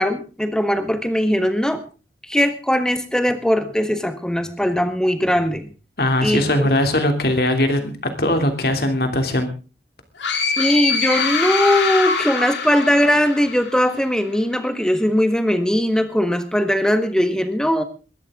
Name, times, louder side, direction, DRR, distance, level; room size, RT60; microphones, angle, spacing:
voice 1, 0.0-1.8 2.3-5.7 6.2-6.8 10.4-17.8, equal, 5° left, 9 dB, 1.4 m, -20 dB
voice 2, 6.0-9.5, left 1 dB, 55° left, 6 dB, 3.0 m, -20 dB
sound 1, 10.2-13.9, left 5 dB, 90° left, 3.6 m, -23 dB
21.5 x 12.5 x 3.8 m, 0.33 s
head